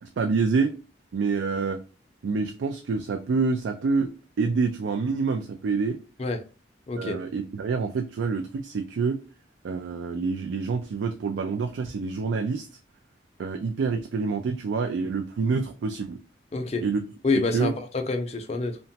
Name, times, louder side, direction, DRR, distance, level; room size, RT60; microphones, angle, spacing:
voice 1, 0.0-0.7 1.1-1.8 2.2-4.1 4.4-6.0 6.9-9.2 9.6-12.7 13.4-16.2 16.8-17.0 17.5-17.7, right 4 dB, 80° right, 0.3 m, -27 dB
voice 2, 6.9-7.2 16.5-16.8 17.2-18.8, left 3 dB, 35° left, 0.5 m, -27 dB
2.9 x 2.2 x 2.7 m
head